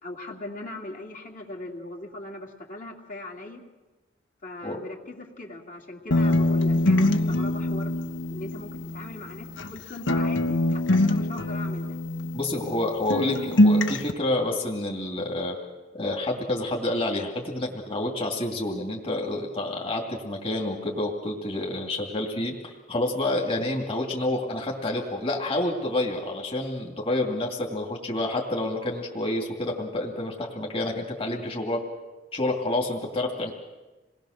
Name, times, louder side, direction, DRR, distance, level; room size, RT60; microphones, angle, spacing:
voice 1, 0.0-3.6 4.4-7.9 8.3-12.0, left 2 dB, 45° left, 0 dB, 2.7 m, -39 dB
sound 1, 6.1-9.8 10.1-12.8 13.1-14.1, left 1 dB, 90° left, 1.3 m, -24 dB
voice 2, 12.3-15.6 15.9-31.8 32.3-33.5, left 1 dB, 30° left, 0 dB, 2.6 m, -28 dB
28.0 x 20.0 x 6.6 m, 1.2 s
head